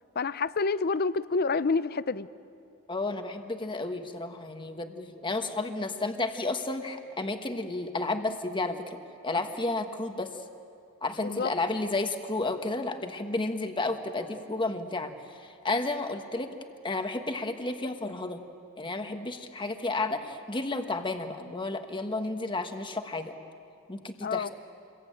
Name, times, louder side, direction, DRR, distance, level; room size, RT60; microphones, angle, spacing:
voice 1, 0.2-2.3 11.2-11.5 24.2-24.5, left 4 dB, 45° left, 16 dB, 0.6 m, -28 dB
voice 2, 2.9-9.0 9.2-10.4 11.0-16.6 16.8-18.4 18.8-23.3 23.9-24.5, left 2 dB, 25° left, 6 dB, 1.4 m, -32 dB
28.0 x 22.5 x 9.0 m, 2.5 s
head